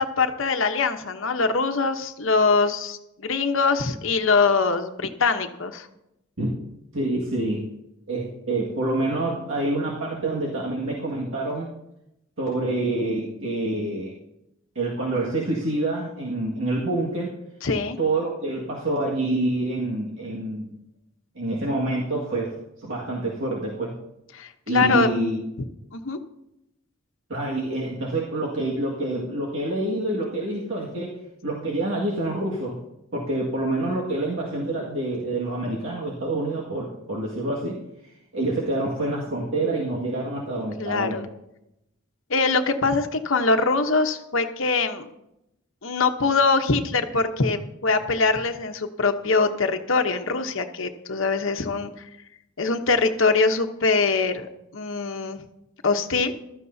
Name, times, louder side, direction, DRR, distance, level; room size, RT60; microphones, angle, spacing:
voice 1, 0.0-5.9 17.6-18.0 24.3-25.1 25.9-26.2 40.8-41.3 42.3-45.1 45.8-51.9 52.6-55.4 55.8-56.3, left 4 dB, 65° left, 6 dB, 1.0 m, -23 dB
voice 2, 6.9-7.6 8.1-11.7 12.4-14.1 14.8-17.3 18.0-20.7 21.4-23.9 24.7-25.4 27.3-31.1 31.4-32.8 33.1-37.8 38.3-41.2, right 2 dB, 70° right, -4 dB, 1.9 m, -27 dB
15.5 x 13.0 x 2.8 m, 0.86 s
head